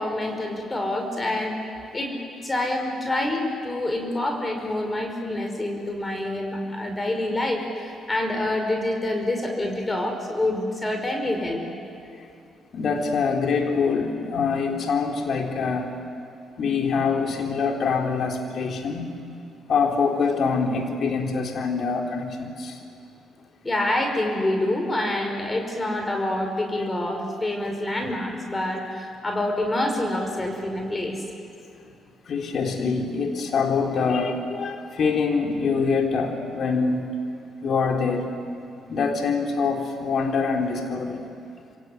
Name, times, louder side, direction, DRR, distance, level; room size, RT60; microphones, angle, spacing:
voice 1, 0.0-1.6 1.9-2.1 2.4-11.6 23.6-31.2, left 1 dB, 25° left, 3 dB, 5.3 m, -27 dB
voice 2, 12.7-16.0 16.6-19.1 19.7-22.8 26.8-26.9 32.3-37.1 37.6-38.3 38.9-41.2, left 5 dB, 55° left, 2 dB, 3.8 m, -24 dB
27.0 x 25.5 x 8.4 m, 2.5 s
figure-of-eight pair, 45°, 0 cm